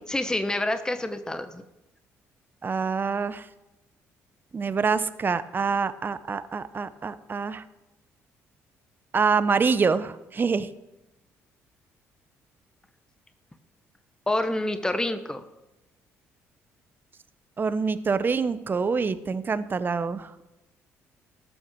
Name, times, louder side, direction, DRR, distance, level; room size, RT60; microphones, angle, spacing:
voice 1, 0.1-1.6 14.3-15.4, left 1 dB, 10° left, 9 dB, 0.9 m, -27 dB
voice 2, 2.6-3.5 4.5-7.6 9.1-10.7 17.6-20.3, right 5 dB, 35° right, 13 dB, 0.6 m, -26 dB
13.0 x 6.2 x 6.1 m, 0.97 s
supercardioid pair, 65°, 6 cm